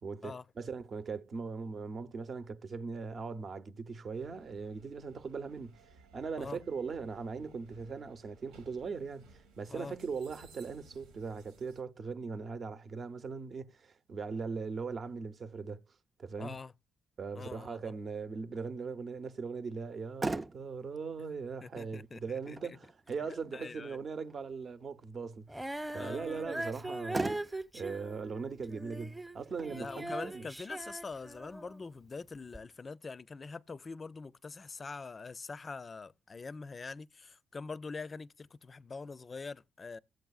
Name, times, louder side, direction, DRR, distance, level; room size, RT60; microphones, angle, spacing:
voice 1, 0.0-5.8 6.1-9.3 9.6-15.8 16.2-16.6 17.2-25.7 25.9-30.4, right 5 dB, 50° right, 0.8 m, -40 dB
sound 1, 4.1-11.8, right 3 dB, 85° right, 1.3 m, -60 dB
voice 2, 16.4-16.7 17.3-17.9 21.6-22.8 23.5-24.0 25.9-26.6 29.7-40.0, left 4 dB, 40° left, 0.4 m, -44 dB
Motor vehicle (road), 19.8-32.8, right 2 dB, 25° right, 0.5 m, -44 dB
Female singing, 25.5-31.8 32.5-32.6, right 1 dB, 10° right, 0.9 m, -41 dB
14.5 x 7.8 x 2.4 m
hypercardioid pair, 50°, 0 cm